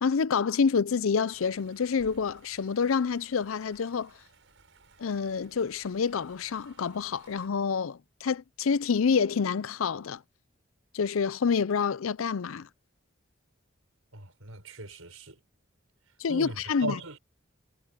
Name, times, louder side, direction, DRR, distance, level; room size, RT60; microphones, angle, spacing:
voice 1, 0.0-4.1 5.0-10.2 10.9-12.7 16.2-16.9, left 5 dB, 80° left, 0.5 m, -27 dB
sound 1, 1.3-7.5, right 3 dB, 65° right, 5.8 m, -59 dB
voice 2, 14.1-15.4 16.3-17.2, right 2 dB, 80° right, 5.7 m, -38 dB
head